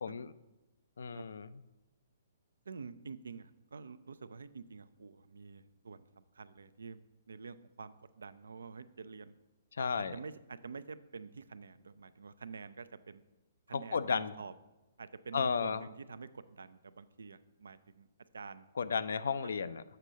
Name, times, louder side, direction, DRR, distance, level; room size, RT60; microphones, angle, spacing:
voice 1, 1.0-1.5 9.8-10.1 13.7-14.3 15.3-15.8 18.8-19.8, left 5 dB, 80° left, 14 dB, 0.4 m, -33 dB
voice 2, 2.7-7.0 7.3-9.3 10.0-13.2 13.7-14.5 15.0-18.1 18.3-18.7, right 5 dB, 85° right, 14 dB, 0.4 m, -48 dB
6.7 x 4.5 x 6.2 m, 1.0 s
hypercardioid pair, 140°, 0 cm